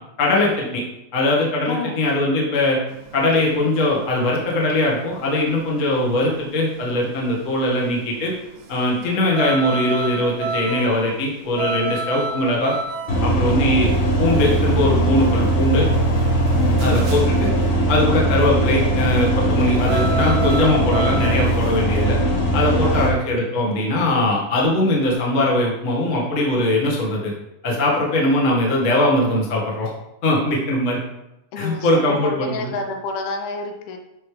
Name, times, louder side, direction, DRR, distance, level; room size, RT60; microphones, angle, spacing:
voice 1, 0.2-0.8 1.1-2.8 3.1-8.3 8.7-12.7 13.2-13.9 14.2-15.9 16.8-17.5 17.9-22.2 22.5-27.3 27.6-29.9 30.2-31.0 31.6-32.7, left 1 dB, 40° left, -3 dB, 1.0 m, -20 dB
voice 2, 1.7-2.0 9.0-9.2 16.6-16.8 22.8-23.1 31.5-34.0, left 3 dB, 75° left, 4 dB, 2.6 m, -29 dB
sound 1, 2.9-21.8, right 3 dB, 75° right, 1.7 m, -31 dB
sound 2, 13.1-23.1, right 1 dB, 60° left, 3.0 m, -20 dB
12.0 x 5.7 x 3.4 m, 0.89 s
omnidirectional pair, 4.6 m